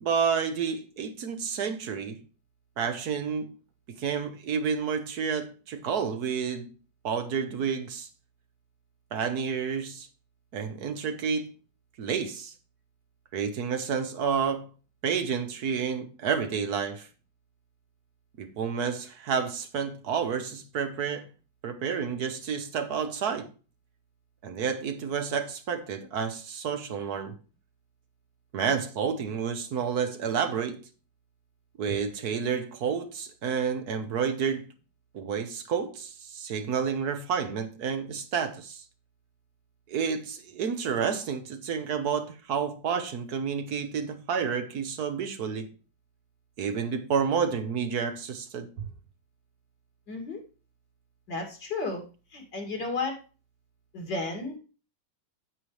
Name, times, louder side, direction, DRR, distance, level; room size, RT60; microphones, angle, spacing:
voice 1, 0.0-2.2 2.8-3.5 3.9-6.7 7.0-8.1 9.1-10.1 10.5-11.6 12.0-12.5 13.3-14.7 15.0-17.1 18.4-21.2 21.6-23.5 24.4-27.4 28.5-30.8 31.8-34.7 35.1-38.8 39.9-45.7 46.6-48.9, right 6 dB, 65° right, 1.4 m, -30 dB
voice 2, 50.1-50.4 51.3-52.0 52.3-53.2 53.9-54.6, left 3 dB, 80° left, 3.2 m, -33 dB
9.3 x 8.6 x 3.2 m
omnidirectional pair, 1.9 m